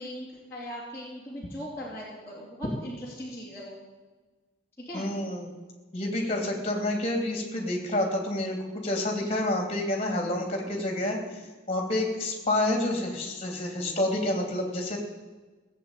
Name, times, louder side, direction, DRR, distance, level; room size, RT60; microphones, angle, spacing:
voice 1, 0.0-3.8 4.8-5.1 9.2-9.4, equal, 10° left, -8 dB, 3.2 m, -40 dB
voice 2, 4.9-5.5 5.9-11.2 11.7-15.0, left 1 dB, 30° left, 2 dB, 3.1 m, -28 dB
17.0 x 8.1 x 9.0 m, 1.3 s
head